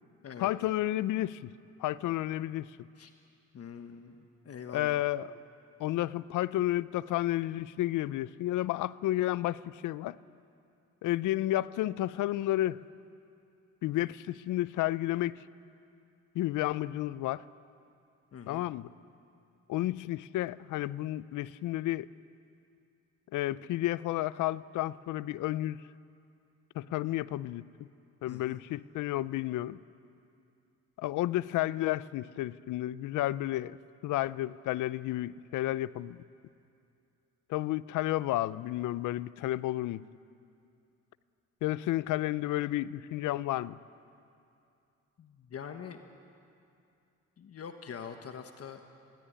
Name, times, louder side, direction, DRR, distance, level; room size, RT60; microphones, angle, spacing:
voice 1, 0.4-1.5 1.8-2.9 4.7-5.4 5.8-10.2 11.0-12.8 13.8-15.4 16.3-17.4 18.5-18.9 19.7-22.1 23.3-25.8 26.7-27.7 28.2-29.8 31.0-33.8 34.0-36.2 37.5-40.0 41.6-43.8, left 15 dB, 80° left, 19 dB, 0.6 m, -31 dB
voice 2, 3.5-5.0 18.3-18.7 28.3-28.6 45.2-46.0 47.4-48.8, left 7 dB, 50° left, 6 dB, 1.4 m, -44 dB
22.5 x 17.5 x 10.0 m, 2.6 s
cardioid pair, 90°, 30 cm